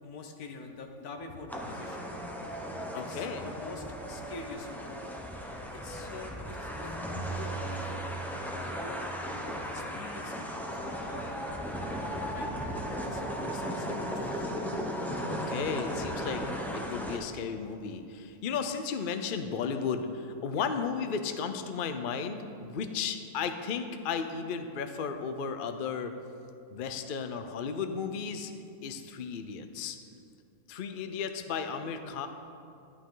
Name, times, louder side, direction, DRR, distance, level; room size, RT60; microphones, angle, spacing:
voice 1, 0.0-2.1 2.9-4.9 5.7-8.0 8.4-11.4 12.3-12.6 13.1-14.5 20.5-20.7, left 3 dB, 75° left, 4 dB, 1.5 m, -46 dB
sound 1, 1.5-17.2, equal, ahead, 0.5 m, -36 dB
voice 2, 2.9-3.5 15.3-16.4 16.7-26.1 26.7-28.5 28.8-30.0 30.7-32.3, left 6 dB, 55° left, 7 dB, 0.5 m, -34 dB
11.5 x 11.5 x 3.9 m, 2.5 s
omnidirectional pair, 1.7 m